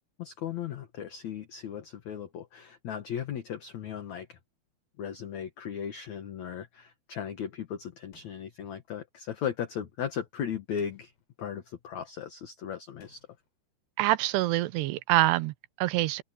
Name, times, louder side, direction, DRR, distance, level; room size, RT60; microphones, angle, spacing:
voice 1, 0.2-4.4 5.0-11.1 11.4-13.2, left 8 dB, 60° left, 2.2 m, -37 dB
sound 1, 8.1-8.6 10.8-11.3 13.0-13.5, left 4 dB, 75° left, 5.6 m, -60 dB
voice 2, 14.0-16.2, right 17 dB, 80° right, 2.8 m, -26 dB
open air
omnidirectional pair, 4.9 m